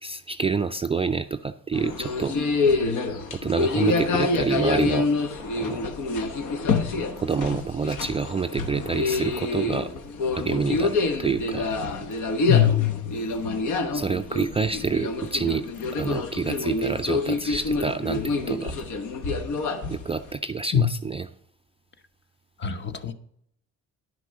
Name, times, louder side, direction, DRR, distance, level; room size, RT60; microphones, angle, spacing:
voice 1, 0.0-2.4 3.3-5.1 5.6-5.8 7.2-9.9 10.3-11.7 13.9-15.7 15.9-18.7 19.9-21.3, right 5 dB, 20° right, 0.3 m, -27 dB
sound 1, 1.7-20.3, left 3 dB, 80° left, 1.1 m, -27 dB
voice 2, 12.4-13.2 13.4-13.6 20.7-20.9 22.6-23.1, left 10 dB, 35° left, 0.9 m, -22 dB
10.5 x 6.1 x 5.6 m
cardioid pair, 90°, 30 cm